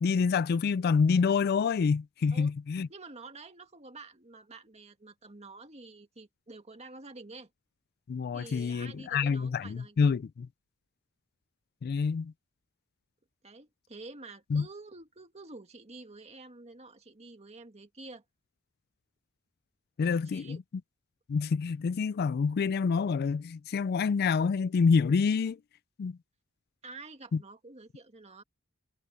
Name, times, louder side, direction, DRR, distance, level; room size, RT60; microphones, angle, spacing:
voice 1, 0.0-2.9 8.1-10.5 11.8-12.3 14.5-14.6 20.0-20.6 21.3-25.6 26.0-26.2 27.3-27.4, left 5 dB, 50° left, 0.3 m, -27 dB
voice 2, 2.9-7.5 8.3-10.2 13.4-18.2 20.0-20.6 26.8-28.4, right 3 dB, 30° right, 1.9 m, -48 dB
head